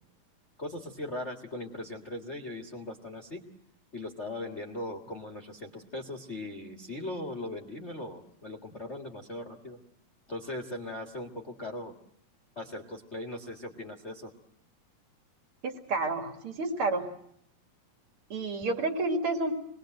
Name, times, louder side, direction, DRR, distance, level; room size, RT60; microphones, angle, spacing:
voice 1, 0.6-3.4 3.9-9.8 10.3-11.9 12.5-14.3, left 1 dB, 30° left, 3 dB, 1.2 m, -39 dB
voice 2, 15.6-17.1 18.3-19.5, right 2 dB, 40° right, 4 dB, 2.7 m, -30 dB
27.0 x 21.5 x 7.8 m, 0.73 s
omnidirectional pair, 4.1 m